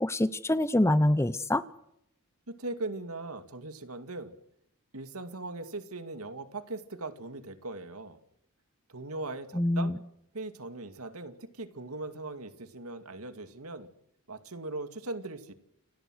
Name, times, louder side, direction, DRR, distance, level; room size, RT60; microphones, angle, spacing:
voice 1, 0.0-1.6 9.5-10.0, left 1 dB, 10° left, 15 dB, 0.8 m, -25 dB
voice 2, 2.5-4.4 4.9-8.2 8.9-10.0 10.3-13.9 14.3-15.5, right 2 dB, 85° right, 10 dB, 2.4 m, -39 dB
29.0 x 17.5 x 6.4 m, 0.77 s
head